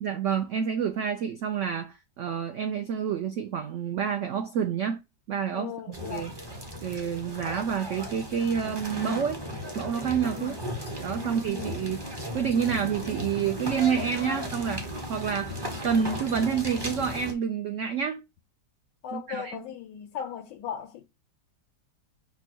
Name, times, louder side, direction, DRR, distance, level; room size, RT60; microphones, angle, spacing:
voice 1, 0.0-5.0 5.3-6.3 6.8-9.4 9.7-10.6 11.0-12.0 12.3-15.6 15.8-18.2 19.1-19.6, right 7 dB, 80° right, 0.6 m, -28 dB
voice 2, 5.5-6.3 10.3-10.7 11.2-11.8 19.0-21.0, left 9 dB, 85° left, 1.3 m, -38 dB
sound 1, 5.9-17.3, equal, 25° right, 0.5 m, -36 dB
5.2 x 2.3 x 4.3 m
omnidirectional pair, 1.9 m